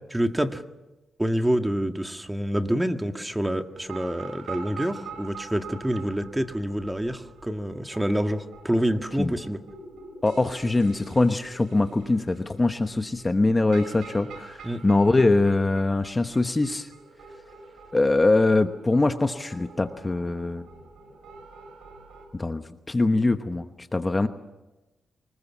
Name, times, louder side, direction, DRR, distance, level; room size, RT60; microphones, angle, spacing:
voice 1, 0.1-0.6 1.2-9.6 14.6-14.8, right 1 dB, 10° right, 6 dB, 1.7 m, -27 dB
sound 1, 3.8-22.2, right 4 dB, 90° right, 6.1 m, -45 dB
voice 2, 10.2-14.6 14.8-16.9 17.9-20.6 22.3-22.6 22.9-23.7 23.9-24.3, left 2 dB, 20° left, 8 dB, 1.1 m, -22 dB
24.5 x 20.5 x 7.3 m, 1.0 s
cardioid pair, 80°, 0 cm